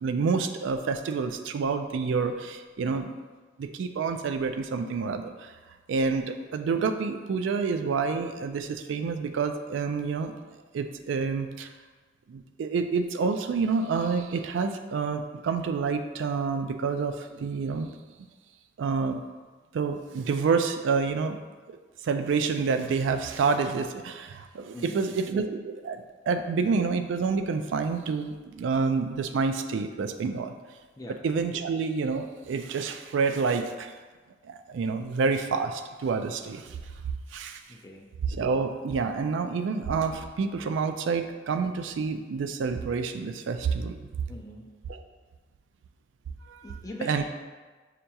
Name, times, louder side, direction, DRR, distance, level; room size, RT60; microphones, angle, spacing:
voice 1, 0.0-3.1 3.6-5.5 5.9-10.3 10.7-11.7 12.3-17.9 18.8-19.2 19.7-21.4 21.7-21.8 22.0-30.5 31.2-33.9 34.4-36.8 37.3-37.6 38.3-44.1 44.9-45.0 46.5-46.6 47.0-47.2, right 5 dB, 75° right, 8 dB, 0.3 m, -28 dB
voice 2, 24.7-25.1 31.0-31.2 37.7-38.1 44.3-44.7 46.6-47.2, left 1 dB, 20° left, 1 dB, 0.4 m, -42 dB
6.4 x 2.8 x 2.3 m, 1.3 s
head